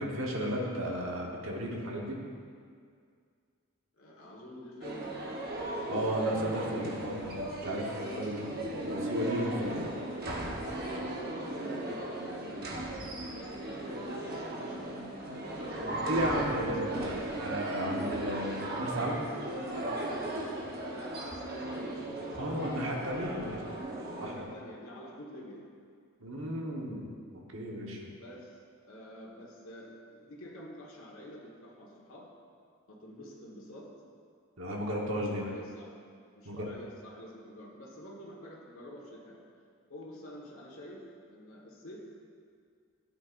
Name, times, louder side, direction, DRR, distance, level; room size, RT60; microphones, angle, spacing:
voice 1, 0.0-2.2 5.9-9.9 11.0-11.1 15.8-19.2 22.4-23.6 24.2-24.5 26.2-27.1 27.5-28.1 34.6-35.4 36.4-36.7, equal, 65° right, -1 dB, 1.3 m, -34 dB
voice 2, 4.0-5.2 10.8-15.1 15.6-17.2 20.9-23.6 24.2-25.6 28.2-32.3 32.9-33.9 35.2-35.9 36.3-39.4 39.9-42.0, equal, 75° left, -4 dB, 1.6 m, -48 dB
sound 1, 4.8-24.4, right 1 dB, 45° right, 1.1 m, -36 dB
12.0 x 8.7 x 2.6 m, 2.2 s
head